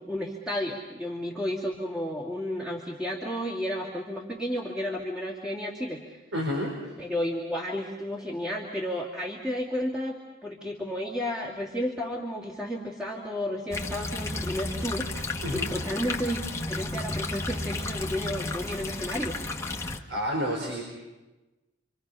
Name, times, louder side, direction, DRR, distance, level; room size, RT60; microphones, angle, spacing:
voice 1, 0.0-6.2 7.0-19.4, equal, 5° right, -4 dB, 2.5 m, -32 dB
voice 2, 6.3-6.7 15.4-15.7 19.8-20.8, equal, 85° right, -1 dB, 4.6 m, -30 dB
sound 1, 13.7-20.0, left 2 dB, 15° left, 1.4 m, -33 dB
29.5 x 25.0 x 5.6 m, 1.1 s
head